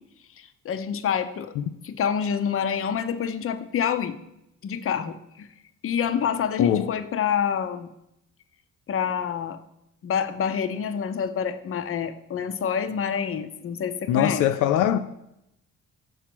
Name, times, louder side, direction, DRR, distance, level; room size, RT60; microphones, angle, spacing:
voice 1, 0.4-1.5 1.8-4.2 4.6-5.5 5.8-7.9 8.9-9.6 10.0-14.5, left 7 dB, 45° left, 0.6 m, -27 dB
voice 2, 6.6-6.9 14.1-15.0, left 10 dB, 85° left, 0.5 m, -22 dB
5.6 x 4.7 x 6.0 m
cardioid pair, 90°, 30 cm